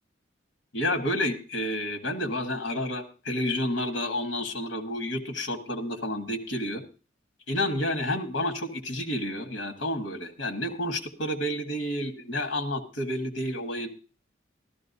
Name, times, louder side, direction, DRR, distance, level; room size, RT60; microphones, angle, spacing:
voice 1, 0.7-6.8 7.5-13.9, left 1 dB, 70° left, 7 dB, 1.4 m, -30 dB
13.0 x 13.0 x 2.6 m, 0.34 s
head